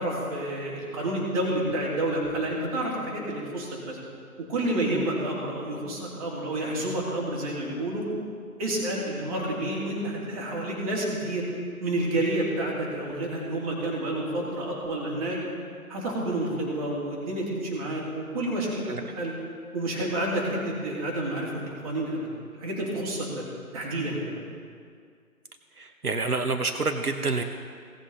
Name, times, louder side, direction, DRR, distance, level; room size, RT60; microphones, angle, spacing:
voice 1, 0.0-4.0 4.4-8.0 8.6-11.4 11.8-15.4 15.9-18.8 19.1-19.3 19.7-22.3 22.6-23.4 23.7-24.4, right 1 dB, 25° right, -4 dB, 2.5 m, -29 dB
voice 2, 25.8-27.4, right 3 dB, 80° right, 6 dB, 1.0 m, -28 dB
17.0 x 7.6 x 4.0 m, 2.1 s
figure-of-eight pair, 145°, 44 cm